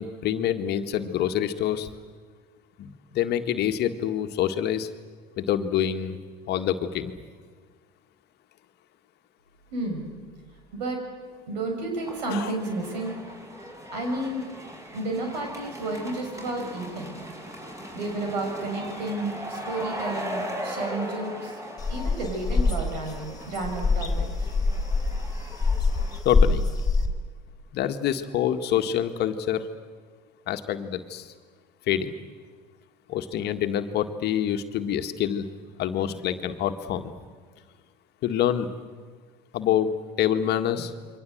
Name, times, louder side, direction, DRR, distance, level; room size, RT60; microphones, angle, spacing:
voice 1, 0.0-1.9 2.8-4.9 5.4-6.2 6.5-7.1 12.3-12.5 26.2-26.6 27.7-29.7 30.5-31.3 31.9-32.1 33.1-35.5 35.8-37.1 38.2-38.7 39.5-39.9 40.2-40.9, left 10 dB, 50° left, 7 dB, 1.8 m, -26 dB
voice 2, 9.7-10.1 10.7-11.0 11.5-13.2 13.9-14.4 14.9-17.1 17.9-21.6 21.9-24.3, right 2 dB, 80° right, 3 dB, 6.4 m, -31 dB
sound 1, 12.0-26.2, equal, 15° right, 6.5 m, -39 dB
sound 2, 21.8-27.1, left 4 dB, 20° left, 3.5 m, -24 dB
29.0 x 23.5 x 7.9 m, 1.5 s
hypercardioid pair, 75°, 21 cm